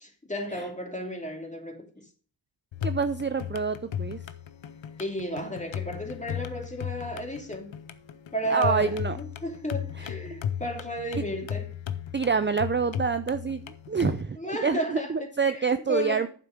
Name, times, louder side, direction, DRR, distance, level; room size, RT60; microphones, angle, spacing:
voice 1, 0.2-2.0 5.0-7.7 8.3-11.8 14.4-16.3, equal, 15° left, 2.7 m, -33 dB
sound 1, 2.7-14.2, left 9 dB, 85° left, 0.8 m, -36 dB
voice 2, 2.8-4.2 8.5-9.2 10.0-10.1 11.2-11.3 12.1-16.3, right 5 dB, 25° right, 0.5 m, -27 dB
9.1 x 7.5 x 5.1 m
wide cardioid pair, 65°, 45 cm